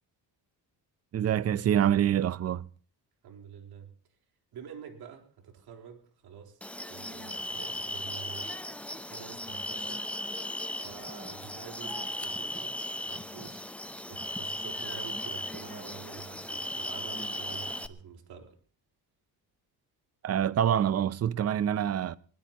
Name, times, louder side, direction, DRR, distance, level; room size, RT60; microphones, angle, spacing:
voice 1, 1.1-2.7 20.2-22.2, right 10 dB, 40° right, 0.7 m, -26 dB
voice 2, 3.2-3.9 4.5-6.6 6.9-8.5 9.1-10.1 10.8-12.7 13.0-13.6 14.1-18.6, right 7 dB, 70° right, 4.1 m, -47 dB
sound 1, 6.6-17.9, left 1 dB, 5° left, 0.7 m, -37 dB
21.5 x 20.5 x 3.0 m
cardioid pair, 145°, 39 cm